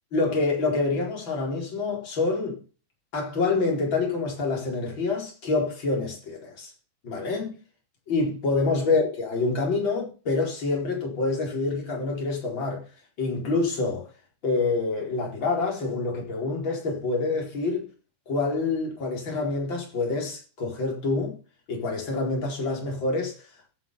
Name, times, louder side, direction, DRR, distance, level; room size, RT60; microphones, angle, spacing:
voice 1, 0.1-2.6 3.1-6.7 7.0-7.6 8.1-12.8 13.2-14.1 14.4-17.9 18.3-21.4 21.7-23.4, left 3 dB, 25° left, 4.6 m, -27 dB
16.0 x 7.8 x 5.6 m
omnidirectional pair, 5.2 m